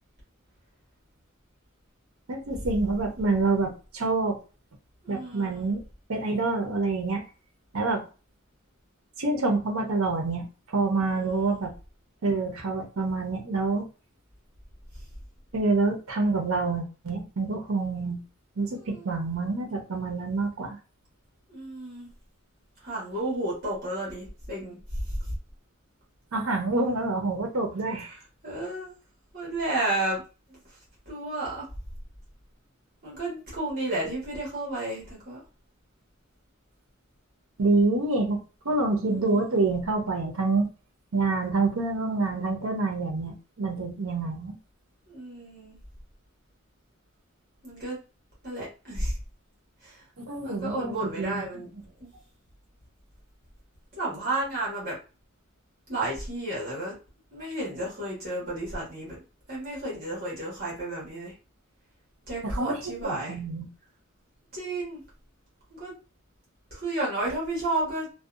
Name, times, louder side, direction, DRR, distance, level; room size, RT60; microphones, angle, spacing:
voice 1, 2.3-4.4 5.1-5.8 6.1-7.2 7.7-8.0 9.2-10.5 10.7-11.7 12.2-13.9 15.5-18.2 18.6-20.8 26.3-28.2 37.6-38.4 38.6-40.7 41.1-44.5 50.2-51.4 62.4-63.7, right 3 dB, 85° right, 3 dB, 0.7 m, -27 dB
voice 2, 5.0-5.7 11.0-11.7 18.7-19.2 21.5-22.1 22.8-25.3 28.0-28.1 28.4-28.9 29.3-30.2 30.5-30.6 31.1-31.6 33.0-35.4 39.0-39.6 45.1-45.8 47.6-48.0 48.4-49.2 49.8-50.0 50.4-51.7 52.0-52.1 54.0-55.0 55.9-56.9 57.3-59.2 59.5-61.3 62.3-63.4 64.5-65.0 65.7-65.9 66.7-68.1, right 2 dB, 45° right, -5 dB, 1.2 m, -32 dB
2.6 x 2.2 x 2.4 m, 0.33 s
head